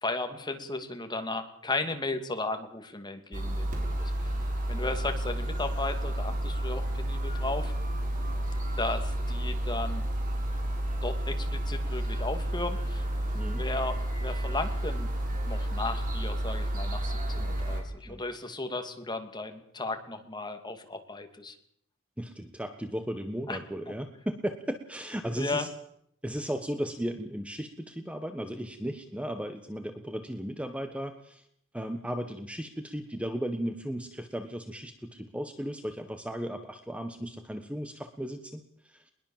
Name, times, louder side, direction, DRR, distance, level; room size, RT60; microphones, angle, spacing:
voice 1, 0.0-4.3 4.7-7.7 8.8-10.0 11.0-13.1 13.5-15.1 15.5-21.5 23.5-23.6 25.4-25.7, left 2 dB, 20° left, 6 dB, 2.7 m, -35 dB
sound 1, 3.3-17.8, right 1 dB, 40° right, 7.1 m, -31 dB
voice 2, 22.2-25.7 26.2-31.4 31.7-39.1, equal, 5° right, 7 dB, 1.4 m, -36 dB
22.0 x 21.5 x 7.5 m, 0.69 s
head